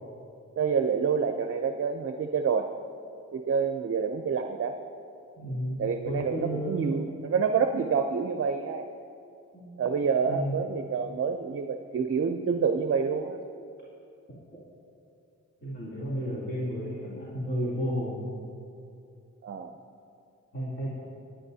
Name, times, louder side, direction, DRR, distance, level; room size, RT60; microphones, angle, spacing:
voice 1, 0.6-2.7 3.3-4.8 5.8-8.9 9.8-13.4 19.4-19.8, right 6 dB, 50° right, 6 dB, 0.6 m, -28 dB
voice 2, 5.3-5.8 6.0-7.0 9.5-9.7 10.3-10.6 14.5-14.6 15.6-18.3 20.5-21.0, equal, 40° left, -9 dB, 3.2 m, -32 dB
27.0 x 9.5 x 2.8 m, 2.6 s
cardioid pair, 65°, 30 cm